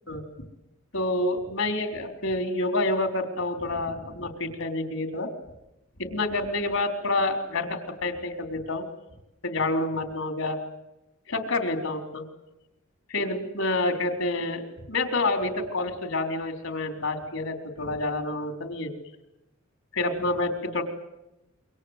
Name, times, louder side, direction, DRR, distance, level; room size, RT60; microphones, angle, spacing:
voice 1, 0.9-5.3 6.0-8.9 9.4-10.6 11.3-12.2 13.1-14.6 14.9-18.9 19.9-20.8, left 2 dB, 75° left, 6 dB, 3.9 m, -28 dB
28.0 x 24.5 x 8.2 m, 0.91 s
head